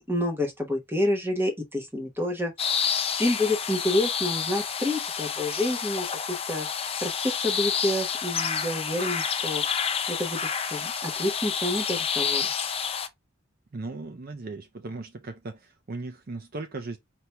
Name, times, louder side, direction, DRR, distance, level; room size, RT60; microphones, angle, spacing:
voice 1, 0.1-2.9 3.2-6.7 7.0-9.6 10.1-12.5, left 1 dB, 10° right, 1.0 m, -28 dB
sound 1, 2.6-13.1, left 7 dB, 30° left, 0.5 m, -29 dB
voice 2, 13.7-17.0, right 3 dB, 45° right, 0.5 m, -37 dB
4.5 x 2.8 x 3.3 m
head